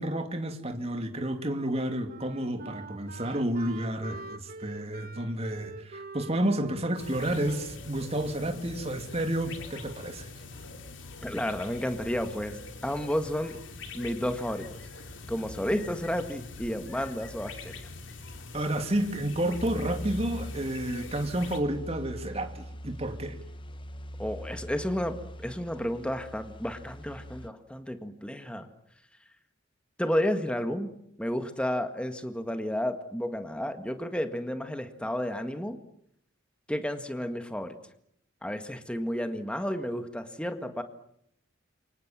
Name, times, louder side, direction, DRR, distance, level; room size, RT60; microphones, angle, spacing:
voice 1, 0.0-10.3 18.5-23.4, right 1 dB, 30° right, 2.7 m, -30 dB
Wind instrument woodwind instrument, 2.1-8.9, right 3 dB, 45° right, 1.6 m, -46 dB
sound 1, 7.0-21.6, left 3 dB, 65° left, 3.3 m, -44 dB
voice 2, 11.2-13.6 13.9-14.7 15.3-17.9 24.2-28.7 30.0-30.9 31.2-35.8 36.7-37.8 38.4-40.8, equal, 5° left, 1.8 m, -32 dB
sound 2, 19.5-27.5, equal, 25° left, 1.1 m, -42 dB
28.5 x 25.5 x 7.5 m
head